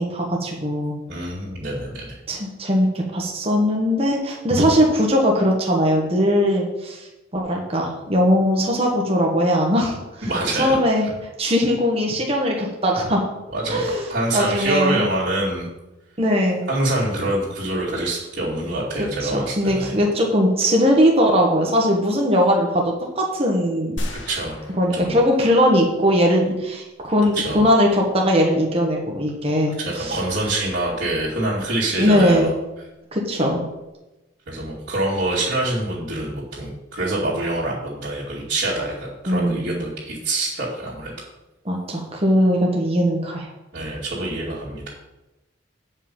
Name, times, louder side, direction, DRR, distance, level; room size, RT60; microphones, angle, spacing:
voice 1, 0.0-1.0 2.3-7.1 7.3-10.0 10.6-11.1 11.4-13.2 13.7-14.0 14.3-15.0 16.2-16.6 19.2-24.0 24.8-30.2 32.0-32.5 33.1-33.6 39.3-39.7 41.6-43.5, equal, 30° right, 0 dB, 1.4 m, -20 dB
voice 2, 1.1-2.2 10.2-10.8 13.5-15.7 16.7-20.0 24.3-24.6 24.9-25.2 27.3-27.7 29.8-32.5 34.5-41.1 43.7-44.9, right 2 dB, 55° right, -11 dB, 2.6 m, -25 dB
sound 1, 24.0-26.2, equal, 75° left, 1.4 m, -34 dB
9.4 x 5.6 x 5.5 m, 1.0 s
head